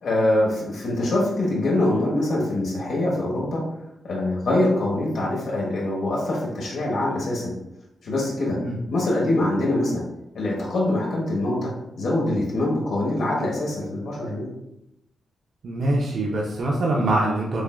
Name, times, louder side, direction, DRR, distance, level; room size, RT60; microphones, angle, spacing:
voice 1, 0.0-3.6 4.0-7.5 8.0-8.6 8.9-10.0 10.3-11.7 12.0-14.5, left 1 dB, 70° left, -3 dB, 1.2 m, -24 dB
voice 2, 15.6-17.6, right 1 dB, 60° right, -3 dB, 0.7 m, -23 dB
6.3 x 2.4 x 2.2 m, 0.84 s
cardioid pair, 105°, 0 cm